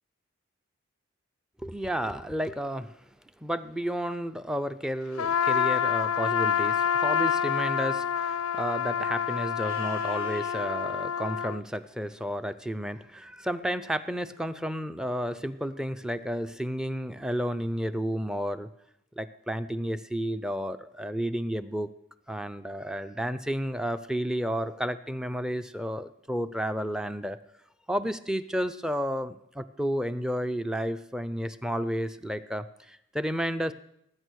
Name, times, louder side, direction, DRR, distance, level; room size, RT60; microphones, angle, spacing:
voice 1, 1.6-3.0 3.4-18.7 19.2-21.9 22.3-27.4 27.9-33.7, equal, 5° right, 12 dB, 0.4 m, -32 dB
Trumpet, 5.2-11.6, left 8 dB, 80° left, 0.5 m, -27 dB
Livestock farm animals working animals, 9.5-10.6 13.4-14.4, right 4 dB, 40° right, 4.3 m, -49 dB
19.5 x 9.1 x 6.4 m, 0.80 s
head